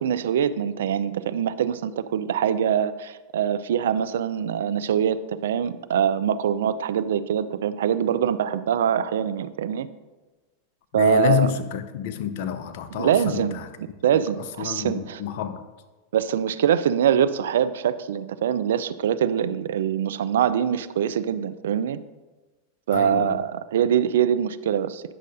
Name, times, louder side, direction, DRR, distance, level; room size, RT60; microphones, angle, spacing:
voice 1, 0.0-9.9 10.9-11.5 13.0-13.6 14.0-15.2 16.1-22.0 22.9-25.0, right 9 dB, 75° right, 14 dB, 0.3 m, -23 dB
voice 2, 10.9-13.7 14.4-15.6 22.9-23.4, left 9 dB, 65° left, 10 dB, 0.6 m, -28 dB
9.8 x 6.4 x 2.6 m, 1.2 s
hypercardioid pair, 95°, 0 cm